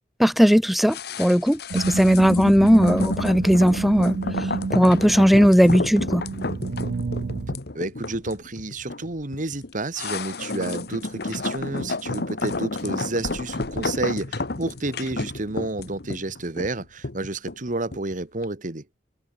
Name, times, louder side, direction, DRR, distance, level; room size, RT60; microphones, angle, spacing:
voice 1, 0.2-4.2 4.7-6.2, equal, ahead, 0.3 m, -18 dB
sound 1, 0.9-18.1 18.4-18.5, left 2 dB, 65° left, 1.5 m, -31 dB
sound 2, 1.7-7.6, right 4 dB, 65° right, 0.5 m, -30 dB
voice 2, 7.7-18.8, right 2 dB, 50° right, 1.7 m, -30 dB
head